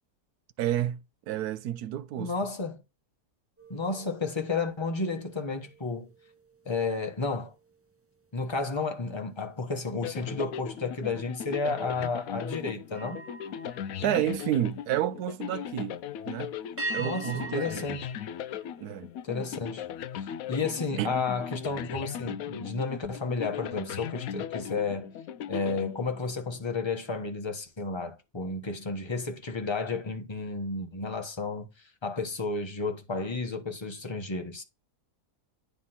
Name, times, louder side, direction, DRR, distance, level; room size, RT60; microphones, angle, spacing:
voice 1, 0.6-2.3 14.0-16.0 16.3-16.6 16.9-17.8 18.8-19.1 21.0-21.2, right 12 dB, 75° right, 1.1 m, -30 dB
voice 2, 2.2-2.8 3.7-6.1 6.6-7.5 8.3-13.2 17.0-18.1 19.2-19.9 20.1-25.1 25.5-31.7 32.0-34.6, left 3 dB, 20° left, 1.0 m, -32 dB
sound 1, 3.6-9.1 9.6-9.9 12.9-15.1 16.8-19.3, right 2 dB, 20° right, 0.4 m, -43 dB
sound 2, 10.0-26.6, left 9 dB, 70° left, 0.9 m, -38 dB
9.6 x 3.5 x 5.7 m
omnidirectional pair, 1.7 m